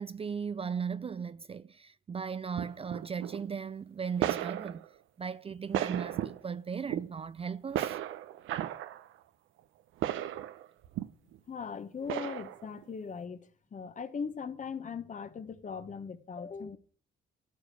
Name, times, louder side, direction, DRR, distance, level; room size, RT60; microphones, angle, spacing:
voice 1, 0.0-4.9 5.2-8.0, right 6 dB, 30° right, 0.4 m, -37 dB
sound 1, 2.6-3.5 4.2-4.9 5.5-6.5 6.9-7.0 7.7-9.1 10.0-11.4 12.1-12.8, right 12 dB, 85° right, 0.8 m, -35 dB
voice 2, 11.5-16.8, left 5 dB, 40° left, 1.2 m, -39 dB
13.5 x 5.0 x 7.9 m
cardioid pair, 90°, 20 cm